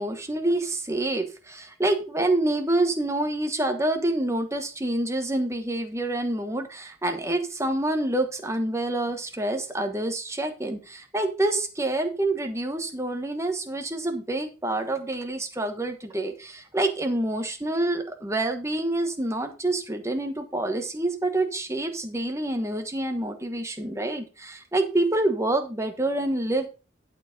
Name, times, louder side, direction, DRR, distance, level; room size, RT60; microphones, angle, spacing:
voice 1, 0.0-26.7, right 1 dB, 15° right, 6 dB, 1.2 m, -27 dB
11.0 x 4.8 x 5.2 m, 0.33 s
head